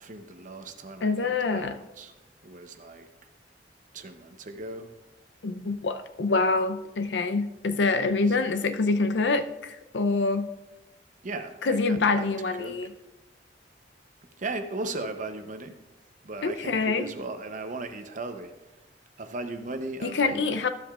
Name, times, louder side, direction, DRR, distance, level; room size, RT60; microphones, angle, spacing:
voice 1, 0.0-2.1 2.4-3.1 3.9-4.9 8.3-8.7 11.2-12.9 14.4-15.8 16.2-18.5 19.2-20.7, right 2 dB, 45° right, 8 dB, 0.7 m, -37 dB
voice 2, 1.0-1.8 5.4-10.6 11.6-12.9 16.4-17.1 20.0-20.7, left 3 dB, 70° left, 9 dB, 0.5 m, -26 dB
13.0 x 7.5 x 2.4 m, 1.0 s
head